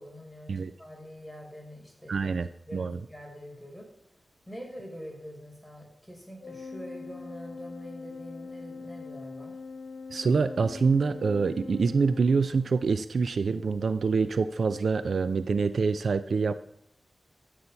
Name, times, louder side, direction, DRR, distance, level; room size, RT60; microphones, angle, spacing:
voice 1, 0.0-2.4 2.7-3.9 4.5-9.6, equal, 5° right, -1 dB, 6.4 m, -45 dB
voice 2, 2.1-3.0 10.1-16.5, right 4 dB, 75° right, 12 dB, 0.6 m, -26 dB
Organ, 6.4-13.0, left 4 dB, 75° left, 1.2 m, -42 dB
13.5 x 8.5 x 5.8 m, 0.75 s
wide cardioid pair, 65°, 0 cm